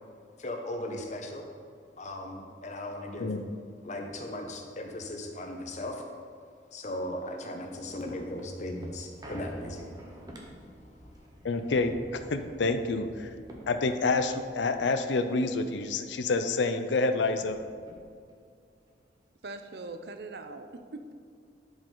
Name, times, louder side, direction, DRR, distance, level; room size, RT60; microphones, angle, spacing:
voice 1, 0.4-1.4 2.0-3.3 3.8-6.0 6.7-9.8, left 1 dB, 40° left, 3 dB, 0.9 m, -37 dB
sound 1, 7.6-16.3 16.7-16.8 17.0-18.4 18.9-19.0, equal, 20° right, 0.9 m, -49 dB
voice 2, 11.4-13.3 13.7-17.6, left 3 dB, 90° left, 9 dB, 0.5 m, -28 dB
voice 3, 19.4-21.1, right 3 dB, 65° right, 7 dB, 0.6 m, -41 dB
11.0 x 5.2 x 3.8 m, 2.2 s
head